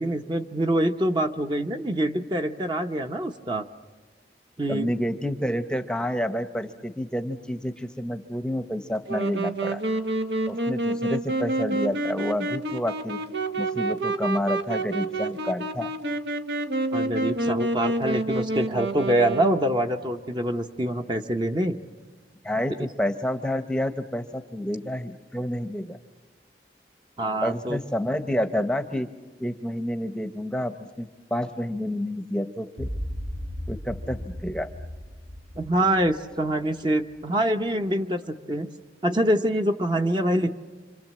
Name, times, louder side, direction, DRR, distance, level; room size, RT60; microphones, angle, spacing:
voice 1, 0.0-3.7 4.6-4.9 16.9-21.8 27.2-27.8 35.6-38.7 39.0-40.6, right 1 dB, 25° right, 6 dB, 0.9 m, -25 dB
voice 2, 4.7-9.8 10.5-13.2 13.6-15.9 22.4-26.0 27.4-29.1 29.4-32.9 33.7-34.7, left 1 dB, 5° left, 8 dB, 0.8 m, -29 dB
Wind instrument woodwind instrument, 9.1-20.0, right 2 dB, 85° right, 1.4 m, -28 dB
sound 1, 32.8-37.1, equal, 50° right, 1.5 m, -36 dB
27.0 x 27.0 x 7.5 m, 1.3 s
head